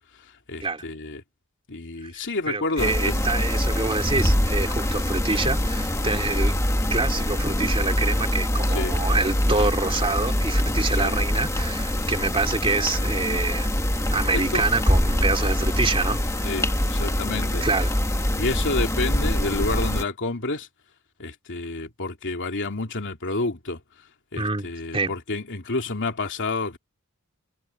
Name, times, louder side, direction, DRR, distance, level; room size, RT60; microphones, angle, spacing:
voice 1, 0.5-1.2 1.7-3.2 8.7-9.0 10.8-11.3 14.3-14.7 16.4-17.6 18.3-20.7 21.2-23.8 24.3-26.8, left 3 dB, 55° left, 2.9 m, -29 dB
voice 2, 2.5-6.5 6.9-13.7 14.1-16.5 17.6-17.9 24.4-25.1, right 3 dB, 25° right, 3.0 m, -26 dB
sound 1, 2.8-20.0, left 1 dB, 15° left, 1.7 m, -24 dB
head